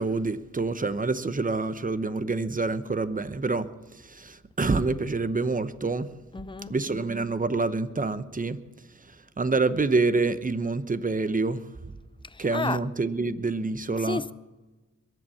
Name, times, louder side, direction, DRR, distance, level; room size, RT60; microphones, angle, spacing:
voice 1, 0.0-6.2 6.7-8.6 9.0-11.7 12.4-14.2, right 3 dB, 25° right, 0.8 m, -27 dB
voice 2, 6.3-6.7 12.2-12.8 14.0-14.3, left 3 dB, 15° left, 0.5 m, -32 dB
22.0 x 7.8 x 7.1 m
cardioid pair, 75°, 30 cm